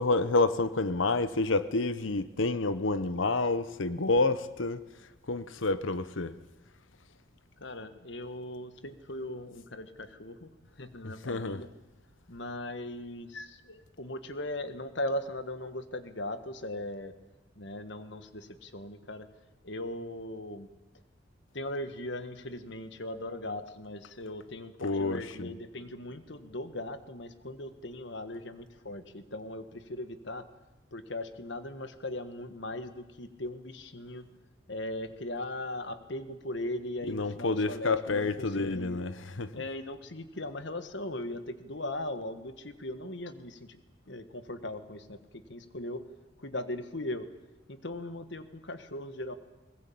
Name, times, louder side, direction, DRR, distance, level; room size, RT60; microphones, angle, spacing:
voice 1, 0.0-4.8 5.3-6.4 11.0-11.6 24.8-25.5 37.1-39.5, left 3 dB, 85° left, 0.9 m, -29 dB
voice 2, 7.6-10.5 10.8-11.7 12.3-17.1 17.6-19.3 19.6-20.7 21.5-30.5 30.9-34.3 34.7-39.0 39.5-43.8 44.1-46.1 46.4-47.3 47.7-49.3, left 1 dB, 70° left, 1.6 m, -39 dB
21.5 x 20.0 x 8.6 m
head